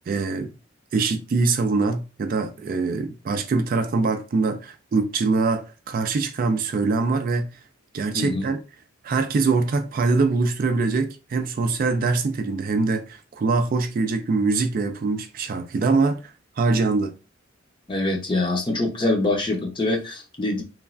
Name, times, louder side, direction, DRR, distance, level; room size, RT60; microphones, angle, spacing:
voice 1, 0.1-0.5 0.9-7.5 7.9-8.6 9.0-16.3 16.6-17.1, right 3 dB, 45° right, 0.3 m, -23 dB
voice 2, 17.9-20.6, left 2 dB, 25° left, 0.6 m, -24 dB
3.0 x 2.3 x 2.4 m
head